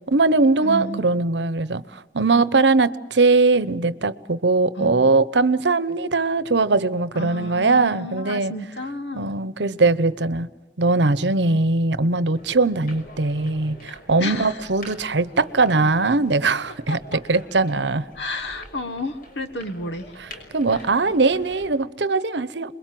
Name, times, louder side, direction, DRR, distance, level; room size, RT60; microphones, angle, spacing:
voice 1, 0.1-8.5 9.1-10.5 10.8-18.0 20.5-22.7, right 3 dB, 70° right, 1.0 m, -20 dB
voice 2, 0.6-1.0 4.7-5.0 7.1-9.3 14.2-14.7 16.9-17.2 18.1-20.2 20.7-20.9, left 1 dB, 70° left, 1.6 m, -32 dB
sound 1, 12.4-21.7, left 1 dB, 55° left, 5.9 m, -45 dB
28.0 x 22.0 x 7.7 m
head